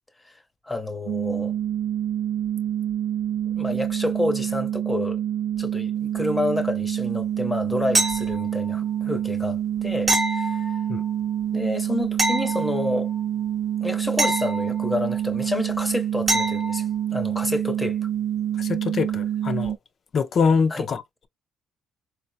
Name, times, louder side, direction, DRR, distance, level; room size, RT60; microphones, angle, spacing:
voice 1, 0.7-1.5 3.4-5.2 5.6-10.7 11.5-13.1 13.8-16.9 17.1-18.0 20.7-20.9, left 1 dB, 10° left, 0.7 m, -29 dB
sound 1, 1.1-19.8, right 10 dB, 85° right, 0.4 m, -27 dB
sound 2, 7.9-8.7 10.1-11.1 12.2-13.2 14.2-15.2 16.3-16.9 19.6-19.7, right 1 dB, 20° right, 0.8 m, -26 dB
voice 2, 18.6-19.8 20.1-21.3, left 5 dB, 45° left, 0.5 m, -24 dB
4.3 x 2.1 x 2.7 m
cardioid pair, 120°, 0 cm